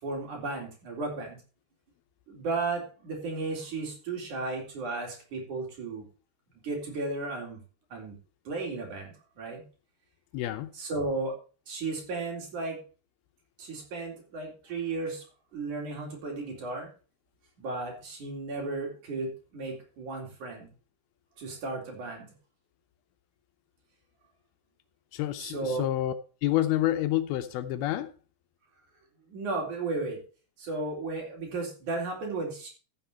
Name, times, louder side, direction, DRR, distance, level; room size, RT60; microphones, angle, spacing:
voice 1, 0.0-1.4 2.3-6.1 6.6-7.6 7.9-8.1 8.4-9.6 10.7-11.3 11.7-12.8 13.6-15.3 15.5-16.9 17.6-20.7 21.4-22.3 25.4-25.9 29.3-30.2 30.6-32.7, right 3 dB, 50° right, 5.0 m, -34 dB
voice 2, 10.3-10.7 25.1-26.1 26.4-28.1, left 13 dB, 80° left, 2.5 m, -28 dB
14.0 x 7.1 x 4.4 m
omnidirectional pair, 4.6 m